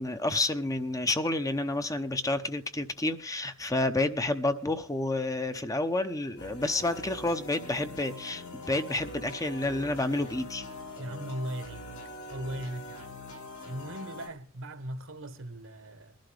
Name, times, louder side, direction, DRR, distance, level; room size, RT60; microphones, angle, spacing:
voice 1, 0.0-10.6, left 2 dB, 15° left, 0.8 m, -30 dB
sound 1, 6.4-14.3, left 1 dB, 85° left, 5.4 m, -43 dB
voice 2, 11.0-11.9 12.3-13.1 13.7-16.2, right 1 dB, 65° right, 1.2 m, -38 dB
21.0 x 11.5 x 3.4 m
head